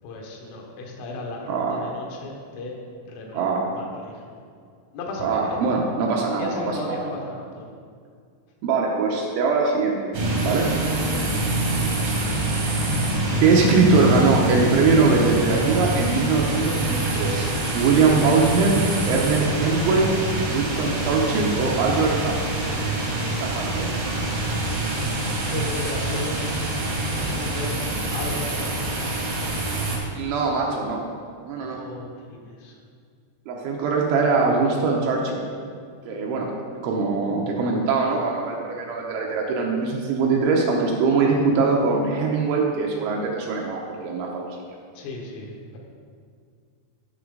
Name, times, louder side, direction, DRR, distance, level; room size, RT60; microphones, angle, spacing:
voice 1, 0.0-2.8 3.0-4.4 4.9-5.6 6.4-7.7 11.1-11.4 25.3-26.4 27.1-27.7 28.1-28.9 31.6-32.8 45.0-45.8, left 2 dB, 80° left, -1 dB, 3.8 m, -35 dB
voice 2, 1.5-1.9 3.3-3.6 5.2-7.0 8.6-10.1 10.4-10.7 13.4-17.5 17.7-18.7 19.1-20.1 20.5-22.7 23.4-23.9 30.2-31.0 31.4-31.8 33.5-35.4 36.1-36.5 36.8-44.4, right 4 dB, 80° right, -1 dB, 3.0 m, -22 dB
sound 1, 10.1-30.0, right 2 dB, 60° right, 1.6 m, -25 dB
14.0 x 6.1 x 3.9 m, 2.2 s
omnidirectional pair, 5.8 m